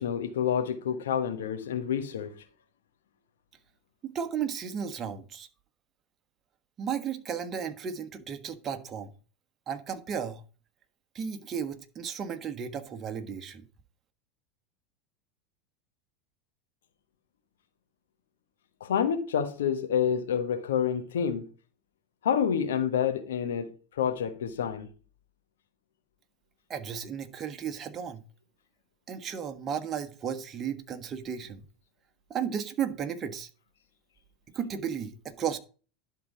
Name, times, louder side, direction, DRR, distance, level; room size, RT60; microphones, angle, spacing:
voice 1, 0.0-2.4 18.8-21.5 22.2-23.7 24.0-24.9, left 8 dB, 75° left, 1.3 m, -28 dB
voice 2, 4.0-5.5 6.8-9.1 9.7-10.4 11.1-13.6 26.7-28.2 29.1-31.6 32.3-33.5 34.5-35.6, right 7 dB, 35° right, 1.3 m, -34 dB
11.5 x 3.9 x 4.9 m
hypercardioid pair, 85°, 0 cm